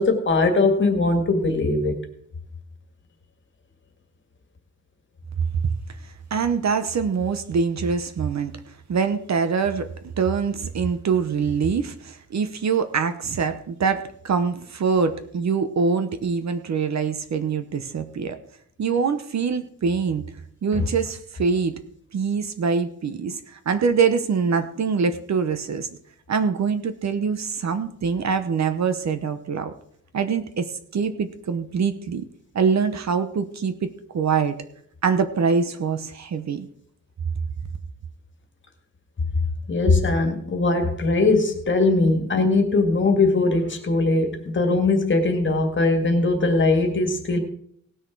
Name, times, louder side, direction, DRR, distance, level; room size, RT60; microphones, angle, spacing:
voice 1, 0.0-2.0 20.7-20.8 39.7-47.4, left 3 dB, 35° left, 5 dB, 1.9 m, -20 dB
voice 2, 6.3-8.6 8.9-9.9 10.2-18.4 18.8-20.2 20.6-21.8 22.1-25.9 26.3-29.7 30.1-32.3 32.5-34.5 35.0-36.7, right 5 dB, 50° right, 10 dB, 0.9 m, -24 dB
18.0 x 6.5 x 4.6 m, 0.64 s
wide cardioid pair, 145°, 34 cm